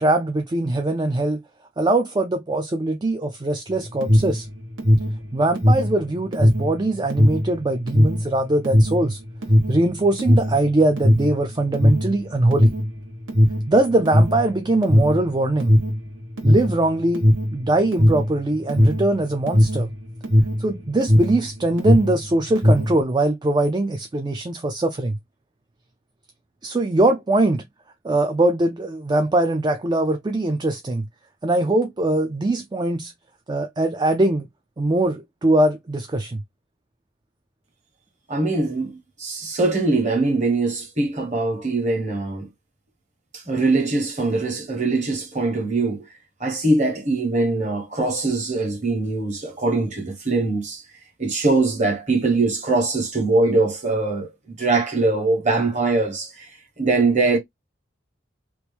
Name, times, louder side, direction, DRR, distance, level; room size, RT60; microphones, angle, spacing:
voice 1, 0.0-1.4 1.8-4.5 5.3-9.2 9.7-12.7 13.7-15.7 16.4-19.9 20.6-25.2 26.6-27.6 28.0-31.1 31.4-33.1 33.5-34.5 34.8-36.4, right 2 dB, 20° right, 0.4 m, -21 dB
Alarm, 3.7-21.5 21.7-23.0, equal, 80° right, 1.4 m, -18 dB
voice 2, 38.3-42.5 43.3-46.1 46.4-50.8 51.2-56.4 56.8-57.4, right 3 dB, 35° right, 1.4 m, -22 dB
3.0 x 2.5 x 3.3 m
head